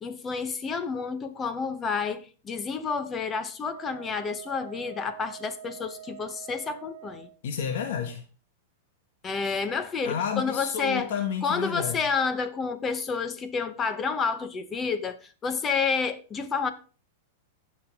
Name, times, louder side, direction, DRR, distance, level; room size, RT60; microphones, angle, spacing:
voice 1, 0.0-7.3 9.2-11.1 11.4-15.2 15.4-16.7, left 5 dB, 20° left, 1.0 m, -29 dB
Wind instrument woodwind instrument, 3.7-7.4, right 11 dB, 85° right, 1.2 m, -45 dB
voice 2, 7.4-8.2 10.0-12.1, left 7 dB, 65° left, 1.4 m, -30 dB
16.0 x 5.4 x 3.7 m
supercardioid pair, 140°, 0 cm